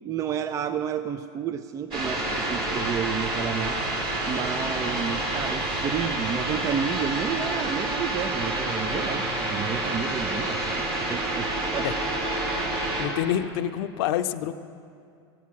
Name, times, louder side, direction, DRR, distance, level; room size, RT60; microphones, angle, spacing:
voice 1, 0.0-11.9, right 8 dB, 20° right, 11 dB, 0.3 m, -31 dB
sound 1, 1.9-13.1, right 1 dB, 40° right, 3.0 m, -28 dB
voice 2, 13.0-14.5, left 11 dB, 60° left, 8 dB, 0.6 m, -27 dB
16.0 x 8.4 x 7.5 m, 2.4 s
supercardioid pair, 130°, 14 cm